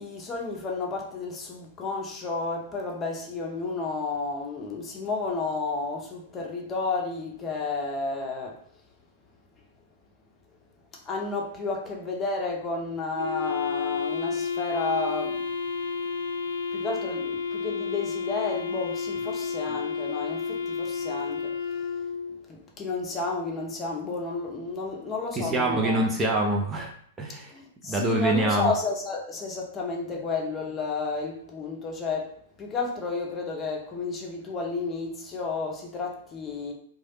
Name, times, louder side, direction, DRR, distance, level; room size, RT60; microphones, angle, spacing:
voice 1, 0.0-8.6 11.0-15.4 16.7-21.8 22.5-26.1 27.5-36.7, left 3 dB, 25° left, 0.7 m, -32 dB
Wind instrument woodwind instrument, 13.2-22.4, left 5 dB, 65° left, 0.3 m, -31 dB
voice 2, 25.4-26.9 27.2-27.5 27.9-28.7, right 1 dB, 15° right, 0.6 m, -25 dB
3.0 x 2.3 x 2.9 m
figure-of-eight pair, 100°, 0 cm